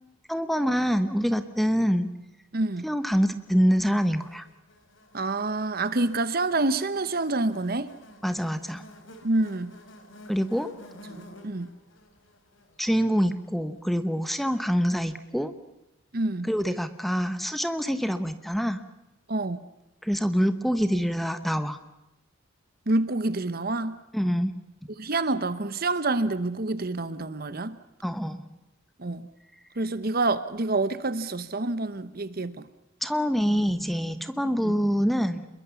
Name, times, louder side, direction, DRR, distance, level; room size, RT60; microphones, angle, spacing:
voice 1, 0.3-2.1 2.8-4.5 8.2-8.8 10.3-10.7 12.8-15.5 16.4-18.8 20.0-21.8 24.1-24.5 28.0-28.4 33.0-35.5, equal, ahead, 1.1 m, -25 dB
voice 2, 2.5-2.8 5.1-7.9 9.2-9.7 11.1-11.7 16.1-16.5 19.3-19.6 22.9-24.0 25.0-27.7 29.0-29.2 29.8-32.6 34.6-34.7, right 2 dB, 45° right, 1.1 m, -27 dB
Buzz, 3.5-13.9, left 1 dB, 65° left, 3.9 m, -51 dB
27.5 x 22.0 x 7.1 m
head